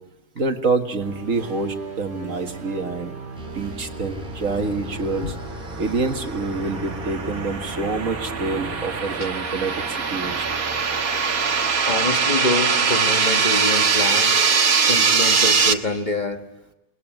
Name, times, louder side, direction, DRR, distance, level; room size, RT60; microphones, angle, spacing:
voice 1, 0.4-3.1 3.5-5.3 5.8-10.5, right 3 dB, 65° right, 5 dB, 2.0 m, -26 dB
sound 1, 1.0-9.2, right 2 dB, 40° right, 1.8 m, -37 dB
sound 2, 3.4-12.8, left 1 dB, 5° right, 3.1 m, -40 dB
sound 3, 5.3-15.7, right 5 dB, 85° right, 1.9 m, -22 dB
voice 2, 11.8-14.3 14.9-16.4, left 2 dB, 35° left, 5 dB, 1.6 m, -26 dB
28.5 x 20.5 x 9.1 m, 0.97 s
omnidirectional pair, 1.5 m